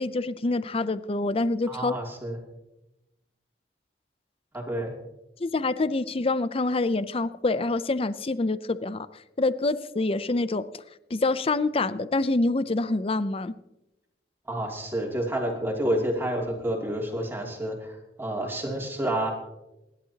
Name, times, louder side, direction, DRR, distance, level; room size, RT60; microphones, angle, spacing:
voice 1, 0.0-2.0 5.4-9.1 9.4-10.6 11.1-13.5, left 2 dB, 35° left, 14 dB, 0.6 m, -26 dB
voice 2, 1.7-2.4 4.5-4.9 14.5-19.3, right 1 dB, 15° right, -1 dB, 2.8 m, -29 dB
28.5 x 11.5 x 2.9 m, 0.94 s
head